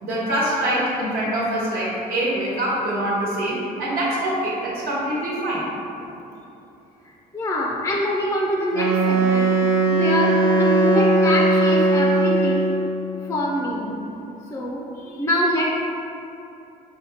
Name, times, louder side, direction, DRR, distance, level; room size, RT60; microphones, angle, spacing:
voice 1, 0.0-5.7, right 1 dB, 60° right, -8 dB, 1.2 m, -24 dB
voice 2, 7.3-9.5 9.9-12.7 13.3-13.9 14.5-15.6, left 1 dB, 15° left, -3 dB, 0.5 m, -24 dB
Wind instrument woodwind instrument, 8.7-12.9, right 2 dB, 80° right, 0.6 m, -19 dB
5.4 x 2.3 x 3.4 m, 2.8 s
cardioid pair, 110°, 17 cm